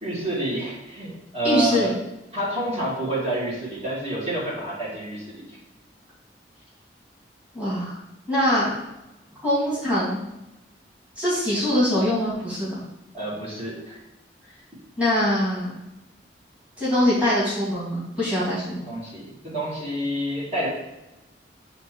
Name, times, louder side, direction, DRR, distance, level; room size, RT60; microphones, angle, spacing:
voice 1, 0.0-1.9 2.3-5.6 13.1-14.0 18.8-20.7, right 1 dB, 35° right, -7 dB, 2.0 m, -28 dB
voice 2, 1.4-1.9 7.5-8.0 8.3-8.7 9.4-10.2 11.2-12.7 15.0-15.7 16.8-18.8, left 1 dB, 5° right, -9 dB, 2.0 m, -23 dB
7.9 x 2.9 x 4.4 m, 0.95 s
head